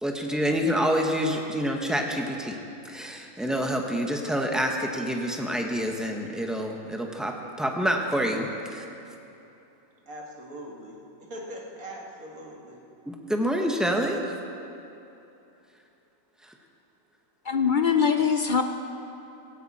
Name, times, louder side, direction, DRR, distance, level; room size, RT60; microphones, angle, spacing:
voice 1, 0.0-2.6 2.8-8.9 13.1-14.2, equal, ahead, 1 dB, 1.1 m, -27 dB
voice 2, 10.1-11.0 11.3-12.8, equal, 80° right, -2 dB, 2.5 m, -41 dB
voice 3, 17.5-18.6, left 6 dB, 50° left, 6 dB, 0.6 m, -22 dB
17.0 x 16.0 x 4.3 m, 2.8 s
omnidirectional pair, 1.4 m